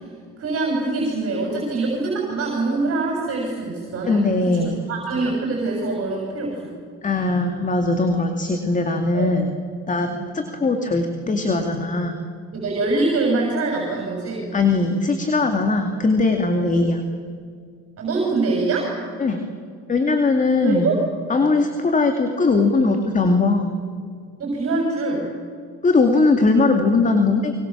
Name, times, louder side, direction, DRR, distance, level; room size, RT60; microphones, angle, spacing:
voice 1, 0.4-6.8 9.1-9.4 10.1-10.3 12.5-14.5 16.6-16.7 18.0-18.9 20.6-20.9 21.4-21.6 24.4-25.3, right 3 dB, 45° right, -2 dB, 7.1 m, -24 dB
voice 2, 4.1-4.8 7.0-9.5 9.9-12.1 14.5-17.0 19.2-19.4 19.9-21.0 21.3-23.7 25.8-27.5, left 3 dB, 25° left, 5 dB, 2.4 m, -20 dB
26.5 x 24.5 x 7.4 m, 2.2 s
cardioid pair, 110°, 31 cm